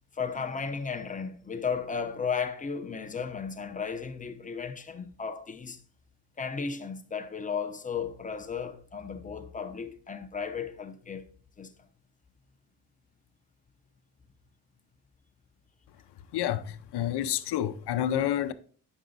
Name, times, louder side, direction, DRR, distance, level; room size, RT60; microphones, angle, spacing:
voice 1, 0.1-5.8 6.4-11.3 11.6-11.9, left 6 dB, 20° left, 0.7 m, -34 dB
voice 2, 16.3-18.5, left 11 dB, 75° left, 0.7 m, -29 dB
9.0 x 6.0 x 3.9 m
cardioid pair, 160°, 41 cm